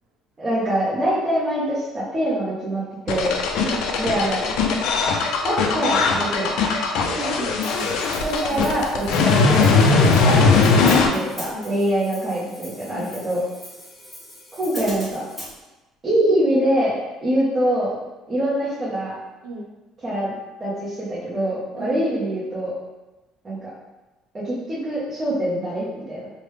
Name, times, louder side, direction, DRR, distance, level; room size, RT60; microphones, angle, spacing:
voice 1, 0.4-3.3 4.0-4.4 5.4-6.6 8.2-13.4 14.6-15.2 16.0-18.0 18.3-19.1 20.0-22.7 23.4-23.7 24.4-26.3, right 1 dB, 25° right, -11 dB, 0.8 m, -24 dB
sound 1, 3.1-11.1, left 4 dB, 70° left, 0.4 m, -19 dB
voice 2, 3.6-4.8 7.1-8.0 8.4-8.7 11.5-11.7 12.9-13.3 19.4-19.7 21.8-22.2, right 1 dB, 75° right, -3 dB, 0.8 m, -36 dB
Hi-hat, 7.6-15.5, left 1 dB, 5° left, 0.9 m, -40 dB
3.1 x 2.1 x 3.2 m, 1.1 s
cardioid pair, 130°, 0 cm